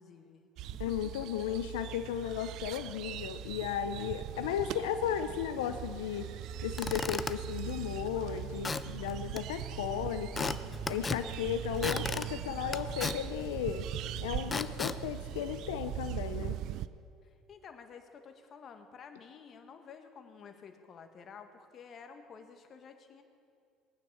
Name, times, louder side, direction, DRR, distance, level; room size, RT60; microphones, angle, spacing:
voice 1, 0.0-0.9 1.2-1.3 3.9-4.1 17.2-23.2, left 6 dB, 45° left, 7 dB, 1.7 m, -52 dB
sound 1, 0.6-16.9, right 13 dB, 65° right, 0.5 m, -40 dB
voice 2, 0.8-6.3 6.6-10.6 10.9-13.9 14.2-16.6, left 9 dB, 85° left, 9 dB, 0.6 m, -35 dB
Squeak / Wood, 6.5-16.1, left 4 dB, 25° left, 0.7 m, -39 dB
19.5 x 9.6 x 7.0 m, 2.3 s
hypercardioid pair, 75°, 0 cm